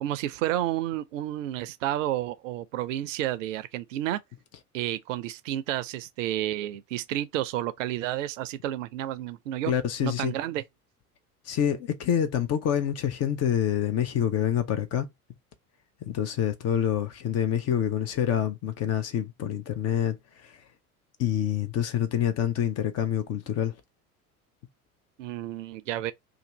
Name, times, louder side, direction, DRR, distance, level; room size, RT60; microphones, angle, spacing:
voice 1, 0.0-4.2 4.7-9.7 10.0-10.6 25.2-26.1, right 13 dB, 60° right, 0.5 m, -31 dB
voice 2, 9.7-10.3 11.5-15.1 16.0-20.6 21.2-23.8, left 10 dB, 35° left, 0.6 m, -27 dB
2.6 x 2.4 x 3.9 m
figure-of-eight pair, 65°, 44 cm